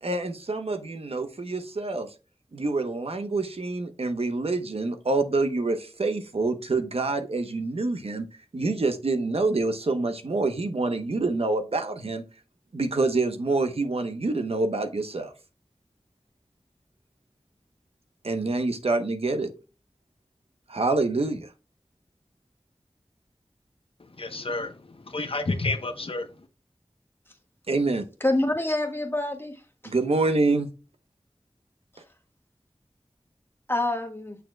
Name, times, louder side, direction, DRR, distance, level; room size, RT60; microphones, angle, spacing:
voice 1, 0.0-2.1 2.5-8.3 8.5-12.2 12.7-15.3 18.2-19.5 20.7-21.5 27.7-28.0 29.8-30.7, right 3 dB, 75° right, 0.9 m, -26 dB
voice 2, 24.0-26.5, left 2 dB, 65° left, 0.9 m, -31 dB
voice 3, 28.2-29.9 33.7-34.4, left 1 dB, 20° left, 1.5 m, -27 dB
6.9 x 6.4 x 2.2 m
wide cardioid pair, 50°, 10 cm